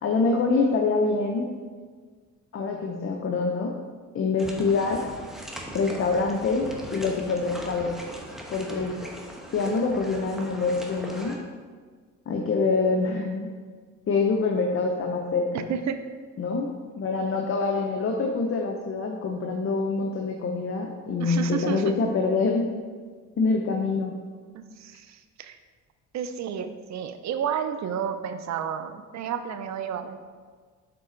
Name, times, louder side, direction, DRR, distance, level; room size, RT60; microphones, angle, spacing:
voice 1, 0.0-1.5 2.5-3.7 4.1-5.1 5.7-8.0 8.5-9.0 9.5-11.4 12.3-13.5 14.1-15.7 16.4-16.7 17.0-22.7 23.4-24.2, left 4 dB, 45° left, 2 dB, 0.7 m, -25 dB
sound 1, 4.4-11.4, equal, ahead, 1.0 m, -39 dB
voice 2, 15.7-16.0 21.2-21.9 24.8-25.6 26.1-30.2, right 7 dB, 65° right, 9 dB, 0.6 m, -31 dB
6.8 x 4.1 x 3.8 m, 1.5 s
cardioid pair, 90°, 30 cm